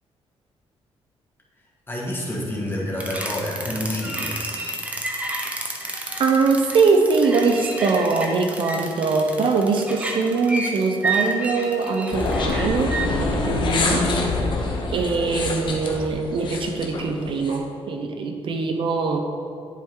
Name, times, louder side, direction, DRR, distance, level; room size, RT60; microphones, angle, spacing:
voice 1, 1.9-4.7, left 1 dB, 20° left, -3 dB, 1.6 m, -28 dB
sound 1, 3.0-13.1, right 2 dB, 15° right, 0.8 m, -30 dB
voice 2, 6.2-14.1 14.9-19.2, right 4 dB, 55° right, 4 dB, 0.6 m, -22 dB
sound 2, 12.1-17.6, left 2 dB, 50° left, 1.0 m, -25 dB
10.5 x 4.3 x 3.7 m, 2.6 s
cardioid pair, 130°, 10 cm